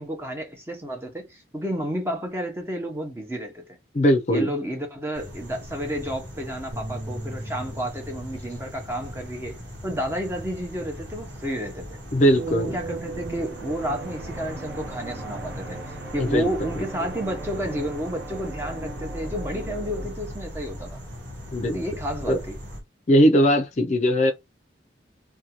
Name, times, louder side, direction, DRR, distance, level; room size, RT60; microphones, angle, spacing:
voice 1, 0.0-3.6 4.3-9.6 9.8-12.0 12.5-21.0 21.7-22.6, equal, 15° right, 0.7 m, -31 dB
voice 2, 3.9-4.5 12.1-12.7 16.2-16.8 21.5-21.8 22.3-22.4 23.1-24.3, equal, 40° left, 0.4 m, -20 dB
sound 1, 5.1-22.8, equal, 90° right, 1.0 m, -39 dB
sound 2, 6.7-13.0, equal, 35° right, 1.2 m, -42 dB
sound 3, 12.3-20.1, right 3 dB, 65° right, 0.7 m, -38 dB
2.6 x 2.2 x 2.9 m
head